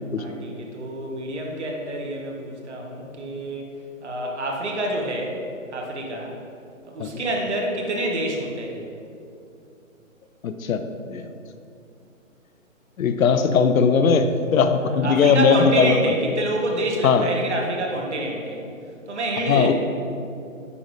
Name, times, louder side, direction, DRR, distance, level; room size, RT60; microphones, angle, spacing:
voice 1, 0.2-3.7 4.0-5.4 5.7-6.3 6.8-8.8 15.0-18.6 19.1-19.7, right 1 dB, 55° right, 0 dB, 1.2 m, -27 dB
voice 2, 10.4-10.8 11.1-11.3 13.0-16.0 17.0-17.3 19.5-19.7, left 5 dB, 75° left, 9 dB, 0.6 m, -19 dB
9.3 x 3.9 x 3.2 m, 2.5 s
hypercardioid pair, 180°, 41 cm